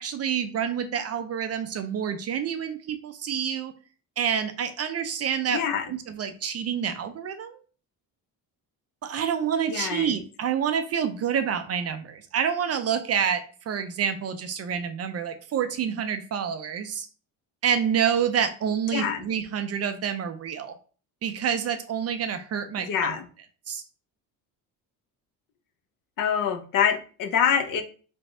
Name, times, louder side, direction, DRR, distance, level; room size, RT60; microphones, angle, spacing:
voice 1, 0.0-3.7 4.2-5.6 5.9-7.6 9.0-17.1 17.6-20.7 21.2-23.2 23.7-23.8, right 8 dB, 40° right, 9 dB, 0.4 m, -28 dB
voice 2, 5.5-5.9 9.7-10.1 18.9-19.2 22.8-23.3 26.2-27.8, left 8 dB, 55° left, 7 dB, 0.6 m, -25 dB
3.4 x 3.3 x 2.6 m, 0.39 s
cardioid pair, 105°, 40 cm